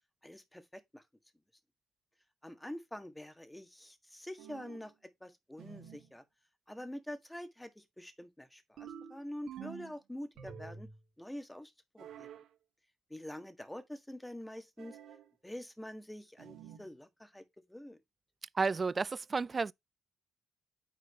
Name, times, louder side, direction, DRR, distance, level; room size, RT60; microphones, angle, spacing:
voice 1, 0.2-1.0 2.4-4.9 5.2-6.2 6.7-10.9 11.2-12.3 13.1-15.0 15.4-18.0, left 1 dB, 5° left, 1.5 m, -46 dB
sound 1, 4.4-4.9 5.6-6.1 8.8-10.0 10.4-11.0 12.0-12.5 14.8-15.3 16.4-16.9, right 8 dB, 75° right, 2.4 m, -49 dB
voice 2, 18.6-19.7, right 4 dB, 30° right, 0.4 m, -31 dB
9.4 x 4.1 x 3.0 m
cardioid pair, 105°, 0 cm